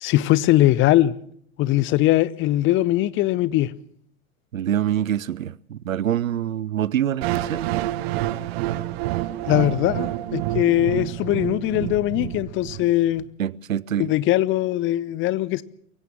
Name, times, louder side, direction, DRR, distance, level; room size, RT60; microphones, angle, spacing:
voice 1, 0.0-1.1 1.6-3.7 9.5-13.2 14.0-15.6, left 15 dB, 30° left, 0.8 m, -21 dB
voice 2, 4.5-7.7 13.4-14.1, right 10 dB, 70° right, 0.8 m, -25 dB
sound 1, 7.2-13.2, right 15 dB, 50° right, 1.0 m, -28 dB
23.0 x 16.5 x 7.3 m
figure-of-eight pair, 85°, 41 cm